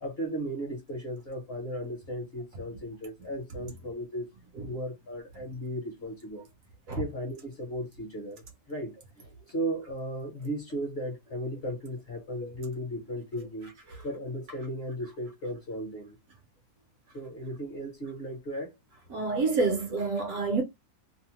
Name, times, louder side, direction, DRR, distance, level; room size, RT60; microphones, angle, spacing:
voice 1, 0.0-4.3 4.6-6.5 6.9-8.4 8.7-13.7 14.0-16.2 17.1-18.7, equal, 45° left, 1.0 m, -36 dB
voice 2, 19.1-20.6, right 3 dB, 65° right, 1.0 m, -28 dB
2.8 x 2.1 x 3.0 m
omnidirectional pair, 1.7 m